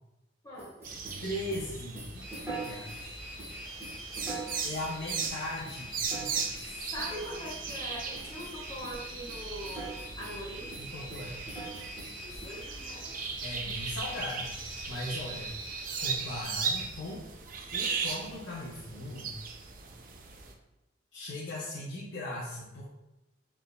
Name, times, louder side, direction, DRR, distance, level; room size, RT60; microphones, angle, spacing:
voice 1, 0.4-0.9 6.7-10.7 12.2-13.1, equal, 20° left, -7 dB, 1.5 m, -42 dB
sound 1, 0.6-3.0 3.4-4.9 5.2-5.4 5.6-6.7 7.0-8.6 8.8-9.0 9.3-10.4 10.7-12.5, right 3 dB, 15° right, 1.2 m, -43 dB
sound 2, 0.8-20.5, right 5 dB, 45° right, 0.4 m, -38 dB
voice 2, 1.2-2.3 2.6-3.1 4.6-6.7 10.8-11.4 13.4-14.5 14.9-15.5 16.0-17.2 17.7-19.3 21.1-22.9, left 1 dB, 65° left, -7 dB, 0.7 m, -39 dB
sound 3, 2.1-16.6, equal, 60° right, 1.0 m, -45 dB
4.3 x 3.4 x 2.2 m, 0.95 s
head